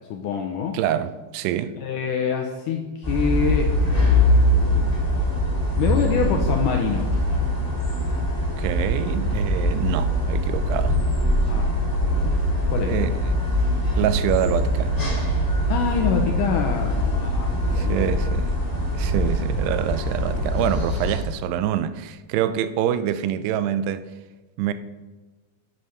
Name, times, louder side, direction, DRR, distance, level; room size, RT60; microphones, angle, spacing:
voice 1, 0.1-0.8 1.8-5.0 5.8-7.1 11.5-12.4 12.7-13.0 15.7-18.2, left 6 dB, 80° left, 1.9 m, -26 dB
voice 2, 0.7-1.8 8.4-11.0 12.9-13.2 14.0-15.0 17.8-18.5 19.0-24.0 24.6-24.7, right 10 dB, 90° right, 2.7 m, -26 dB
sound 1, 3.0-21.2, equal, 5° left, 1.9 m, -22 dB
9.2 x 7.7 x 5.7 m
omnidirectional pair, 4.6 m